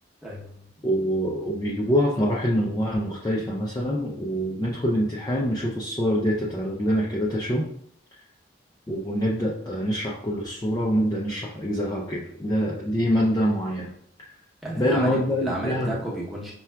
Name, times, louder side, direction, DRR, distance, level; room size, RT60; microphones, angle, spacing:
voice 1, 0.2-0.7 14.6-16.5, right 1 dB, ahead, -5 dB, 0.7 m, -32 dB
voice 2, 0.8-7.7 8.9-13.9 14.2-14.3 14.8-15.9, equal, 20° left, -4 dB, 0.3 m, -25 dB
5.6 x 2.3 x 2.2 m, 0.68 s
head